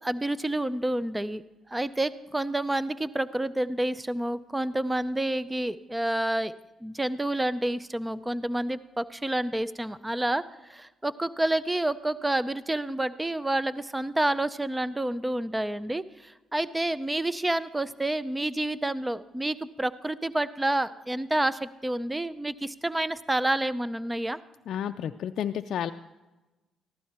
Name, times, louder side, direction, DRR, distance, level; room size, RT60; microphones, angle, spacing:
voice 1, 0.0-1.4 1.7-6.5 6.8-10.4 10.7-24.4, right 1 dB, 10° right, 15 dB, 0.5 m, -29 dB
voice 2, 24.7-25.9, left 9 dB, 70° left, 6 dB, 0.4 m, -31 dB
14.5 x 12.0 x 4.3 m, 1.1 s
cardioid pair, 90°, 0 cm